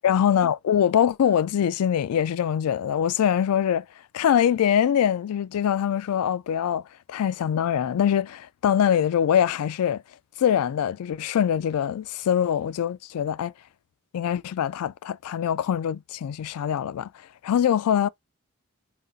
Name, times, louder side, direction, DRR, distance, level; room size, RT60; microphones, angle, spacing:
voice 1, 0.0-3.8 4.1-6.8 7.1-10.0 10.4-13.5 14.1-17.1 17.4-18.1, left 9 dB, 85° left, 0.3 m, -23 dB
4.0 x 2.4 x 3.9 m
head